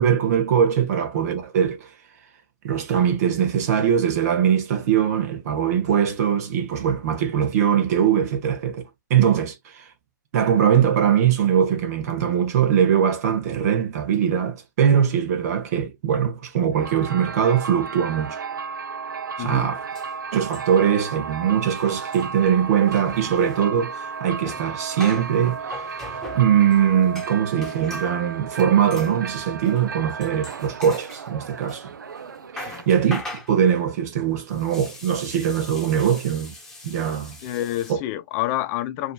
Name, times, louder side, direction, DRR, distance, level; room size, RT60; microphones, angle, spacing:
voice 1, 0.0-1.9 2.6-8.8 9.1-9.9 10.3-18.4 19.4-19.8 20.3-25.9 26.3-31.9 32.5-33.2 33.5-36.5 36.8-37.4, right 8 dB, 50° right, 1.4 m, -21 dB
sound 1, 16.7-33.2, right 5 dB, 75° right, 0.6 m, -34 dB
voice 2, 19.4-19.7 32.7-32.8 37.4-39.1, left 14 dB, 35° left, 0.7 m, -28 dB
sound 2, 19.6-19.7 19.9-21.0 21.2-21.4 21.6-28.2 28.9-29.2 29.6-29.9 30.2-31.8 32.2-37.9, left 2 dB, 5° left, 1.3 m, -41 dB
5.2 x 3.0 x 2.2 m
figure-of-eight pair, 110°, 11 cm